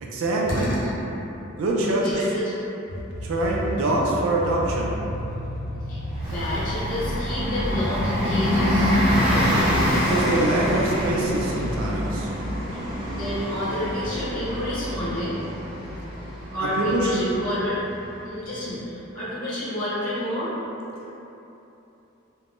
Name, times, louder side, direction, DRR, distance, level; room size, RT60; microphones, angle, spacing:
voice 1, 0.0-0.7 1.6-2.2 3.2-4.9 9.9-12.3 16.8-17.3, right 2 dB, 70° right, -2 dB, 0.3 m, -24 dB
voice 2, 0.6-0.9 1.7-2.5 3.7-4.0 5.9-9.0 13.2-15.4 16.5-17.8 18.2-20.5, left 1 dB, 40° left, -11 dB, 0.9 m, -29 dB
sound 1, 2.9-11.8, equal, 90° left, 0.4 m, -34 dB
Bus, 6.1-18.4, equal, 5° right, 0.8 m, -26 dB
2.4 x 2.1 x 3.4 m, 3.0 s
head